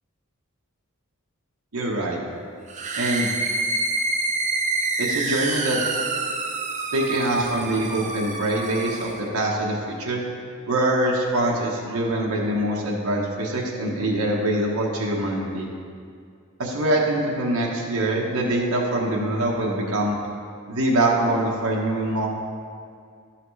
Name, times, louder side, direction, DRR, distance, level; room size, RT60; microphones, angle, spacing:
voice 1, 1.7-2.2 3.0-3.3 5.0-5.8 6.9-10.2 10.7-15.7 16.6-20.2 20.7-22.3, right 1 dB, 80° right, -2 dB, 1.0 m, -24 dB
sound 1, 2.7-9.2, right 3 dB, 35° right, 0.5 m, -27 dB
11.5 x 5.8 x 3.2 m, 2.2 s
head